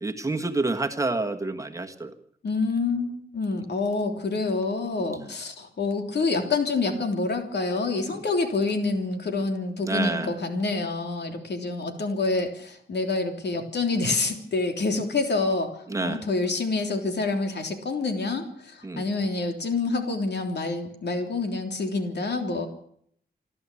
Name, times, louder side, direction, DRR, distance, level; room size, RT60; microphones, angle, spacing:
voice 1, 0.0-2.1 5.1-5.3 8.0-8.2 9.8-10.3 15.9-16.2 18.8-19.0, right 2 dB, 20° right, 4 dB, 1.5 m, -28 dB
voice 2, 2.4-15.7 16.0-22.7, left 3 dB, 75° left, 5 dB, 3.3 m, -27 dB
27.0 x 12.5 x 8.5 m, 0.68 s
wide cardioid pair, 170°, 18 cm